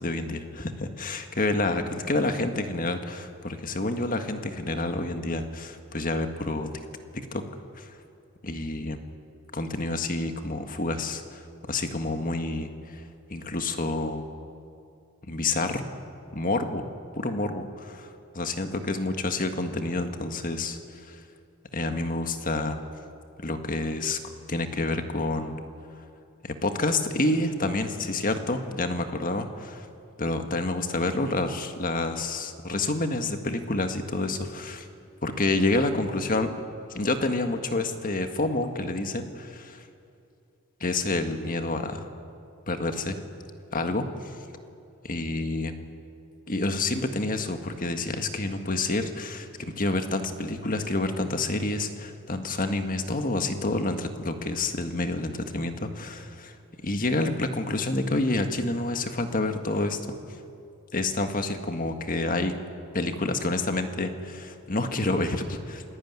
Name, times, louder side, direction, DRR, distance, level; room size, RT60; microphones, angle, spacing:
voice 1, 0.0-6.7 7.1-7.4 7.8-7.9 8.4-9.0 9.5-11.4 11.7-13.0 13.3-14.3 15.3-15.8 16.3-16.8 17.2-17.9 18.4-20.8 21.1-21.2 21.7-22.8 23.4-24.2 24.5-25.6 26.4-29.9 30.2-34.9 35.2-36.5 36.9-39.8 40.8-42.1 42.7-43.2 43.7-44.1 45.0-45.7 46.5-56.5 56.8-60.0 60.9-62.5 62.9-65.8, left 2 dB, 40° left, 7 dB, 1.7 m, -28 dB
27.5 x 18.0 x 9.7 m, 2.6 s
head